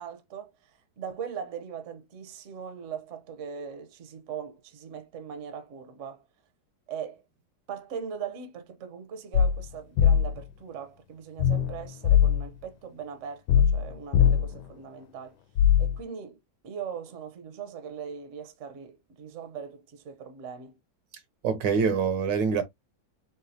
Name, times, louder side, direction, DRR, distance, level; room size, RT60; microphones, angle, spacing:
voice 1, 0.0-6.2 6.9-7.2 7.7-15.4 15.8-20.8, right 7 dB, 50° right, 1.0 m, -40 dB
sound 1, 9.3-9.6 10.0-10.4 11.4-12.5 13.5-14.6 15.6-16.0, left 9 dB, 90° left, 1.4 m, -21 dB
voice 2, 21.4-22.6, right 6 dB, 75° right, 1.5 m, -25 dB
3.9 x 3.7 x 2.7 m
omnidirectional pair, 2.0 m